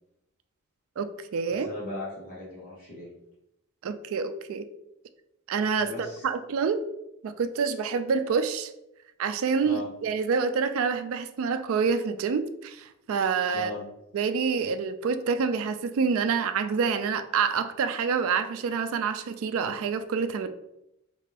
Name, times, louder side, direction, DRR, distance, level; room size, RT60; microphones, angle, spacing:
voice 1, 1.0-1.7 3.8-4.7 5.5-5.9 6.2-6.9 7.2-8.7 9.2-13.7 14.1-20.5, right 5 dB, 70° right, 10 dB, 0.3 m, -27 dB
voice 2, 1.5-3.1 5.8-6.3 9.6-9.9 13.5-13.8, left 2 dB, 40° left, -7 dB, 1.1 m, -37 dB
4.3 x 2.5 x 3.2 m, 0.85 s
head